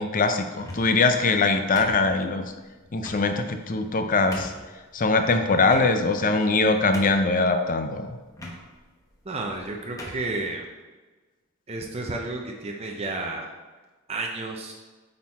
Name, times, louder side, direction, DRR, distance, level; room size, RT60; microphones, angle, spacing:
voice 1, 0.0-2.5 2.9-4.5 4.9-8.2, left 3 dB, 40° left, 7 dB, 0.6 m, -22 dB
sound 1, 0.5-1.0 1.8-2.4 3.0-3.2 3.8-3.9 4.3-4.7 5.6-6.2 6.6-6.7 6.9-7.4 8.3-8.6 9.4-9.6 10.0-10.3, left 1 dB, 15° left, 1.1 m, -38 dB
voice 2, 9.3-10.7 11.7-13.5 14.1-14.7, right 2 dB, 30° right, 0 dB, 0.7 m, -31 dB
8.8 x 4.0 x 4.2 m, 1.3 s
head